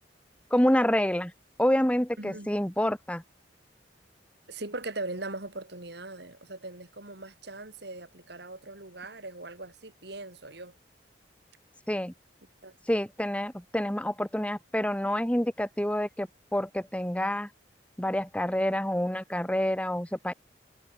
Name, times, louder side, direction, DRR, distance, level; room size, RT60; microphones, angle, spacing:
voice 1, 0.5-1.3 1.6-3.2 11.9-12.1 12.9-17.5 18.0-20.3, equal, 5° left, 1.7 m, -27 dB
voice 2, 2.2-2.5 4.5-10.7 12.6-12.8, right 2 dB, 65° right, 4.5 m, -40 dB
head